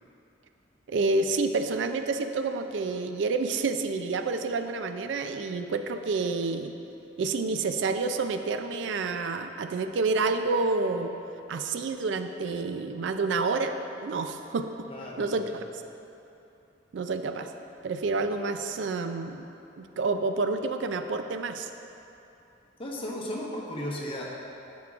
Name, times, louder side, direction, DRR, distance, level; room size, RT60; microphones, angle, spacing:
voice 1, 0.9-6.7 7.2-11.1 11.5-13.7 14.0-14.7 15.2-15.6 16.9-17.5 17.8-19.5 19.8-21.7, right 3 dB, 70° right, 7 dB, 0.4 m, -29 dB
voice 2, 14.9-15.3 22.8-24.3, left 1 dB, 30° left, -4 dB, 1.1 m, -35 dB
11.5 x 6.1 x 2.4 m, 2.9 s
head